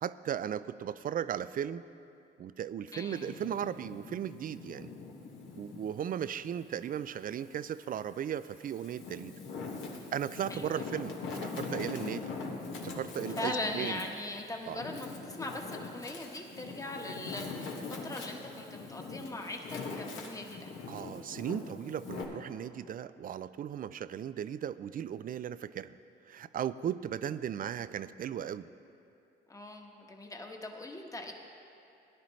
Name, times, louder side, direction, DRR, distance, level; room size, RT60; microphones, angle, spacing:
voice 1, 0.0-1.8 2.4-4.9 5.6-9.3 10.1-12.4 12.8-14.0 14.7-14.8 20.9-25.9 26.3-28.7, right 9 dB, 45° right, 15 dB, 0.4 m, -36 dB
voice 2, 2.9-3.3 10.5-10.8 13.4-20.7 29.5-31.3, left 2 dB, 15° left, 2 dB, 1.2 m, -40 dB
Wind, 3.0-5.9 6.4-7.7 8.3-22.2, left 4 dB, 75° left, 1.6 m, -42 dB
17.0 x 10.5 x 3.2 m, 2.7 s
cardioid pair, 90°, 20 cm